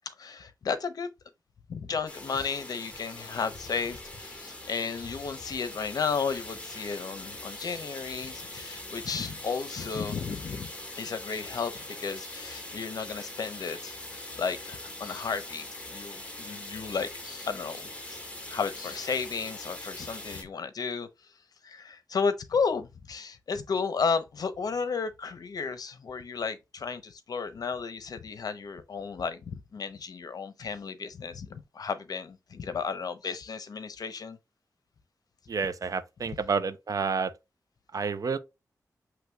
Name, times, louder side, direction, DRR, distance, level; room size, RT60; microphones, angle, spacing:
voice 1, 0.1-1.1 1.7-18.2 18.5-21.3 21.6-34.4, left 5 dB, 75° left, 0.7 m, -33 dB
sound 1, 2.1-20.4, left 1 dB, 20° left, 1.5 m, -42 dB
voice 2, 35.5-37.3 37.9-38.4, right 5 dB, 60° right, 0.6 m, -29 dB
7.8 x 3.0 x 2.2 m
wide cardioid pair, 100°, 7 cm